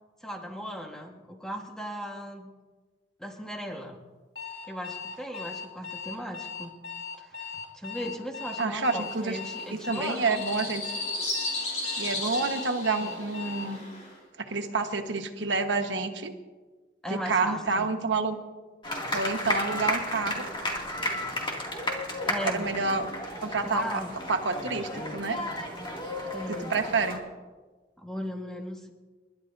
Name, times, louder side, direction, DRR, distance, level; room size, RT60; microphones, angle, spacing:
voice 1, 0.2-2.5 3.2-4.0 4.7-6.7 7.2-7.5 7.7-10.4 13.0-13.2 17.0-17.9 22.3-22.7 23.6-24.1 26.3-26.7 28.0-28.9, equal, 5° left, 2 dB, 1.4 m, -37 dB
Alarm, 4.4-13.8, left 5 dB, 60° left, 2.4 m, -39 dB
voice 2, 8.6-9.4 9.7-10.8 12.0-13.8 14.4-16.3 17.1-18.4 19.1-20.5 22.4-23.1 23.4-23.9 24.3-25.4 26.5-27.2, right 4 dB, 85° right, 5 dB, 1.3 m, -28 dB
sound 1, 9.0-14.2, left 2 dB, 40° left, 4.8 m, -35 dB
sound 2, 18.8-27.2, left 1 dB, 25° left, 2.3 m, -33 dB
29.5 x 12.0 x 2.7 m, 1.3 s
head